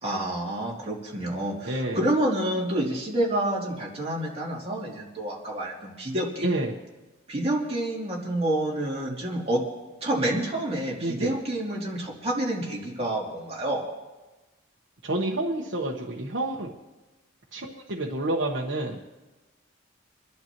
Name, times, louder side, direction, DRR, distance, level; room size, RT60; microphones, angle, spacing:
voice 1, 0.0-6.5 7.3-9.6 10.0-13.8, right 1 dB, 30° right, -4 dB, 2.9 m, -28 dB
voice 2, 1.6-2.0 6.4-6.8 11.0-11.3 15.0-16.7 17.5-19.0, right 1 dB, 65° right, -3 dB, 1.2 m, -29 dB
27.0 x 11.5 x 3.0 m, 1.1 s
head